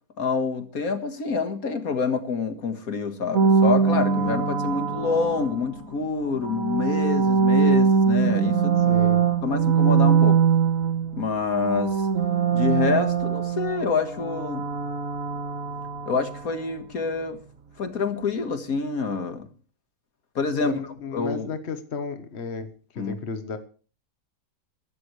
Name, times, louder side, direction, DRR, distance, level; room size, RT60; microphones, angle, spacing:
voice 1, 0.2-8.9 9.4-10.4 11.2-12.1 12.5-14.7 16.1-17.4 17.8-19.5 20.4-20.8 21.1-21.5 23.0-23.2, left 4 dB, 80° left, 2.1 m, -27 dB
sound 1, 3.3-5.8 6.4-11.3 11.5-16.5, right 6 dB, 70° right, 1.7 m, -22 dB
voice 2, 8.9-9.2 20.6-23.6, left 5 dB, 50° left, 1.5 m, -33 dB
22.5 x 12.5 x 3.3 m
omnidirectional pair, 1.5 m